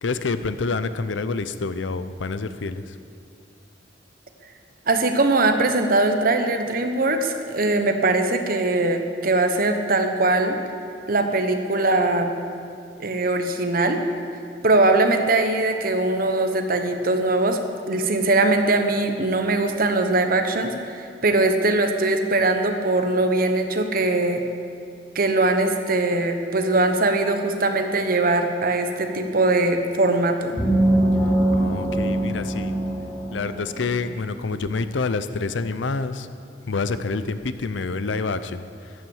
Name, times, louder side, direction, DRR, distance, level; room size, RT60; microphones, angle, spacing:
voice 1, 0.0-3.0 31.5-32.7 33.3-36.3 36.7-38.9, left 4 dB, 85° left, 12 dB, 0.6 m, -27 dB
voice 2, 4.9-10.6 11.1-12.3 13.0-14.0 14.6-17.6 17.9-24.4 25.1-30.6, right 2 dB, 50° right, 6 dB, 1.1 m, -21 dB
sound 1, 30.6-34.1, right 1 dB, 15° left, 1.9 m, -22 dB
14.0 x 9.2 x 7.2 m, 2.4 s
head